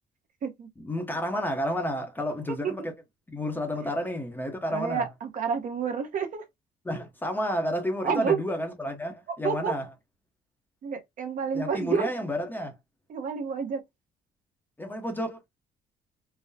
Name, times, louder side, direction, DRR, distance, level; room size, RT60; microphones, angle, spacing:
voice 1, 0.8-2.9 3.3-5.1 6.8-9.9 11.5-12.8 14.8-15.4, equal, 10° left, 0.7 m, -31 dB
voice 2, 4.7-6.4 8.0-8.4 9.4-9.7 10.8-12.1 13.1-13.8, right 6 dB, 50° right, 0.9 m, -29 dB
3.8 x 2.0 x 2.6 m
cardioid pair, 140°, 17 cm